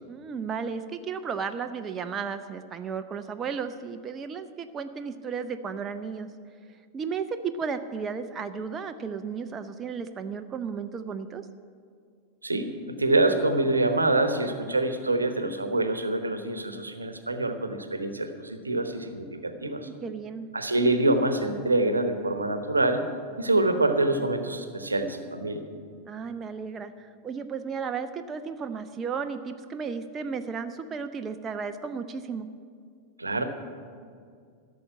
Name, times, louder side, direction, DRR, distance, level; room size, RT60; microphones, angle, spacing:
voice 1, 0.1-6.3 6.9-11.5 19.7-20.5 26.1-32.5, right 6 dB, 25° right, 8 dB, 0.5 m, -34 dB
voice 2, 12.4-19.9 20.5-23.0 23.4-25.6 33.2-33.4, right 2 dB, 80° right, 8 dB, 1.0 m, -26 dB
13.0 x 6.5 x 9.6 m, 2.3 s
figure-of-eight pair, 90°, 0 cm